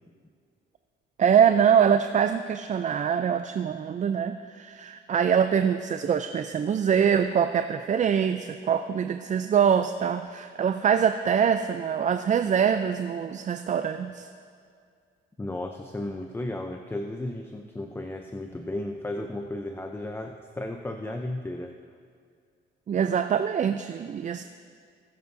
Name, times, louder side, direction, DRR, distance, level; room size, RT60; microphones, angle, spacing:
voice 1, 1.2-14.3 22.9-24.4, right 8 dB, 40° right, 8 dB, 0.4 m, -24 dB
voice 2, 15.4-21.8, left 1 dB, 10° left, 4 dB, 0.6 m, -34 dB
19.5 x 8.0 x 2.6 m, 2.2 s
cardioid pair, 90°, 20 cm